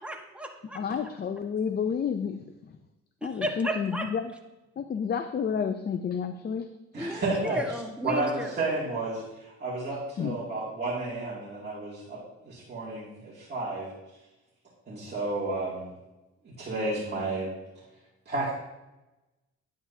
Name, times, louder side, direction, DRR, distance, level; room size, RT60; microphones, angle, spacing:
voice 1, 0.0-0.8 3.2-4.0 7.0-8.5, equal, 5° right, 2 dB, 1.3 m, -33 dB
voice 2, 0.7-2.8 3.2-4.3 4.8-6.7 10.2-10.4, left 7 dB, 35° left, 8 dB, 0.5 m, -30 dB
voice 3, 6.9-7.6 8.0-13.9 14.9-15.9 16.6-17.5 18.3-18.5, right 2 dB, 35° right, -7 dB, 2.5 m, -32 dB
10.0 x 8.5 x 2.8 m, 1.0 s
cardioid pair, 90°, 30 cm